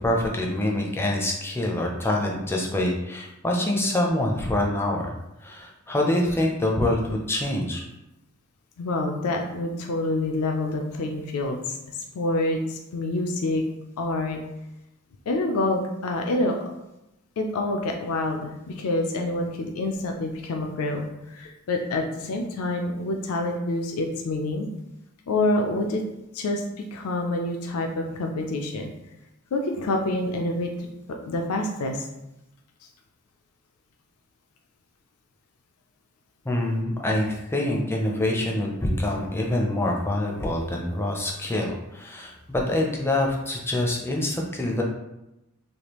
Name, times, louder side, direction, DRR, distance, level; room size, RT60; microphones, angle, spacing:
voice 1, 0.0-5.1 5.4-7.8 36.5-44.8, left 1 dB, 10° left, 0 dB, 0.4 m, -25 dB
voice 2, 8.8-13.6 14.0-14.4 15.3-16.5 17.4-24.7 25.3-26.0 26.3-26.6 26.9-28.9 29.5-30.9 31.3-32.0, left 2 dB, 75° left, 3 dB, 0.4 m, -27 dB
3.3 x 2.3 x 2.9 m, 0.91 s
head